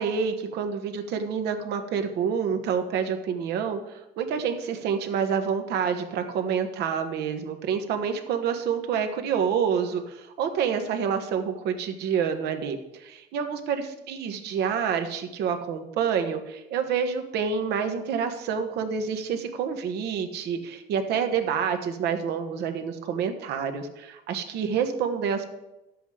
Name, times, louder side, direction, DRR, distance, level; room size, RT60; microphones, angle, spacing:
voice 1, 0.0-25.5, right 7 dB, 80° right, 6 dB, 1.4 m, -28 dB
11.0 x 7.8 x 5.0 m, 0.96 s
cardioid pair, 110°, 17 cm